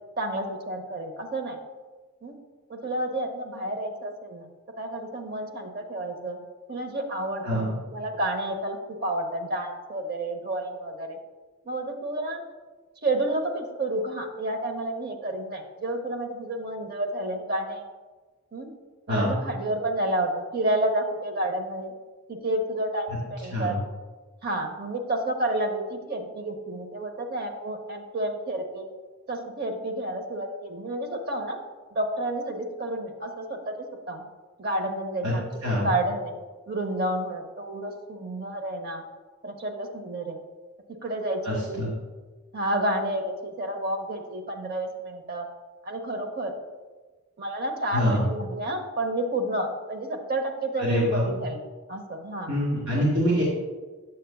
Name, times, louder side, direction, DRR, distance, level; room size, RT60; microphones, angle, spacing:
voice 1, 0.2-1.6 2.2-2.4 2.7-4.5 4.8-6.4 6.7-11.2 11.6-12.4 13.0-17.8 18.5-18.7 19.1-21.9 22.3-23.8 24.4-28.9 29.3-31.6 31.9-34.2 34.6-36.3 36.7-39.0 39.4-40.4 41.0-41.8 42.5-45.5 45.8-46.5 47.4-51.6 51.9-52.5, right 1 dB, 45° right, 5 dB, 0.7 m, -30 dB
voice 2, 41.4-41.9 47.9-48.2 50.8-51.3 52.5-53.4, equal, 90° right, -4 dB, 1.7 m, -25 dB
8.0 x 6.5 x 2.2 m, 1.3 s
head